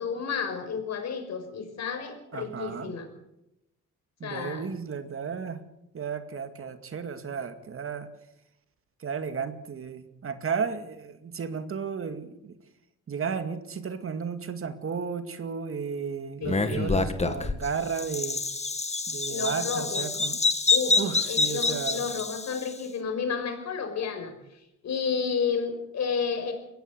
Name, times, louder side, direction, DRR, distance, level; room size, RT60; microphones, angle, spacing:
voice 1, 0.0-3.1 4.2-4.7 16.4-17.1 19.3-20.0 20.7-21.0 21.3-26.5, left 6 dB, 60° left, 6 dB, 5.8 m, -31 dB
voice 2, 2.3-2.9 4.2-5.6 5.9-8.1 9.0-12.6 13.1-18.4 19.1-20.4 21.0-22.0, right 6 dB, 45° right, 9 dB, 2.2 m, -33 dB
Bird vocalization bird call bird song, 16.4-22.7, left 3 dB, 20° left, 2.1 m, -27 dB
22.0 x 16.5 x 8.0 m, 0.87 s
cardioid pair, 90°, 30 cm